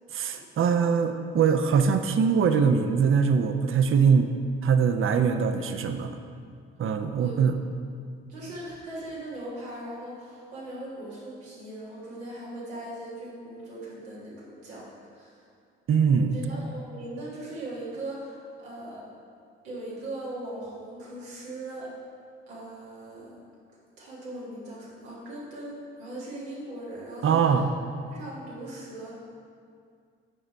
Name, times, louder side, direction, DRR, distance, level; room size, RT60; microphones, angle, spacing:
voice 1, 0.1-4.3 4.6-6.1 6.8-7.6 15.9-16.4 27.2-27.7, right 6 dB, 40° right, 7 dB, 0.6 m, -22 dB
voice 2, 8.3-15.5 16.2-19.1 19.6-21.9 22.5-23.4 24.0-27.7 28.1-29.1, right 1 dB, 90° right, -6 dB, 1.6 m, -39 dB
6.4 x 5.1 x 4.5 m, 2.2 s
hypercardioid pair, 45°, 32 cm